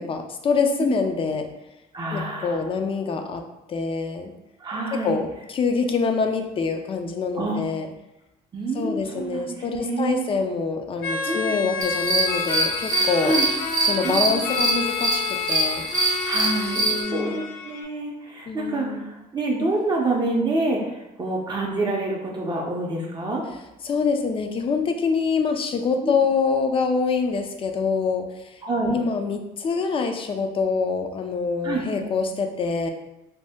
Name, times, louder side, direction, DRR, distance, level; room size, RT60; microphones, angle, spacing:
voice 1, 0.0-1.5 2.1-3.4 3.7-4.3 4.9-7.9 8.7-13.4 13.9-15.8 16.7-17.4 18.5-19.0 23.8-28.3 28.9-32.9, left 5 dB, 30° left, 6 dB, 0.4 m, -25 dB
voice 2, 1.9-2.6 4.6-5.2 7.4-7.6 8.5-10.2 11.3-11.6 13.2-13.5 14.0-14.5 16.2-23.4 26.0-26.1 28.6-28.9 31.6-31.8, right 2 dB, 25° right, -2 dB, 0.5 m, -27 dB
sound 1, 11.0-17.8, left 5 dB, 75° left, 0.6 m, -29 dB
sound 2, 11.8-17.0, right 3 dB, 55° right, 0.8 m, -24 dB
2.6 x 2.1 x 3.4 m, 0.92 s
cardioid pair, 110°, 17 cm